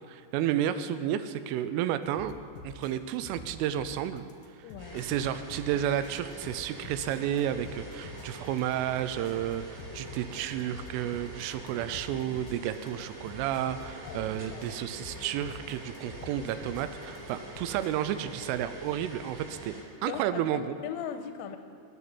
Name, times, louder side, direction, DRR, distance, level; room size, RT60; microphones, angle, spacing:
voice 1, 0.1-2.4 2.6-4.3 4.9-19.7 20.0-20.8, right 11 dB, 85° right, 11 dB, 3.1 m, -31 dB
sound 1, 2.2-17.9, left 5 dB, 65° left, 2.4 m, -47 dB
voice 2, 4.6-5.1 14.0-14.9 20.0-21.6, left 8 dB, 85° left, 7 dB, 3.2 m, -40 dB
sound 2, 4.8-19.8, right 1 dB, 65° right, 7.0 m, -45 dB
22.5 x 9.3 x 4.3 m, 2.3 s
omnidirectional pair, 5.7 m